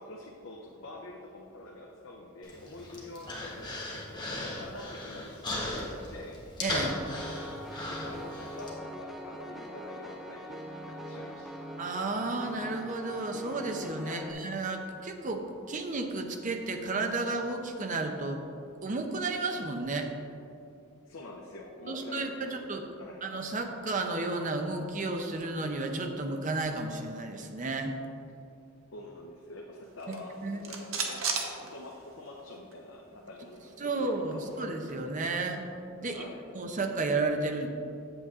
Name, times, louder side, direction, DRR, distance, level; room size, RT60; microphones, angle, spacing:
voice 1, 0.0-4.2 4.5-6.4 7.9-11.6 14.0-14.3 21.1-22.7 23.0-23.2 28.9-33.9 34.3-34.5 36.0-36.4, left 2 dB, 65° left, -1 dB, 0.7 m, -46 dB
Human voice, 2.4-8.7, left 1 dB, 20° left, 1.2 m, -37 dB
voice 2, 6.6-7.0 11.8-18.4 18.8-20.1 21.9-22.8 23.2-27.9 30.4-30.6 33.8-35.6 36.0-36.2 36.5-37.7, right 3 dB, 40° right, 4 dB, 0.7 m, -32 dB
Piano, 6.7-14.3, equal, ahead, 0.5 m, -42 dB
sound 1, 29.9-32.4 32.7-32.8 33.1-35.0, right 5 dB, 70° right, 1.0 m, -37 dB
8.0 x 7.4 x 3.6 m, 2.6 s
head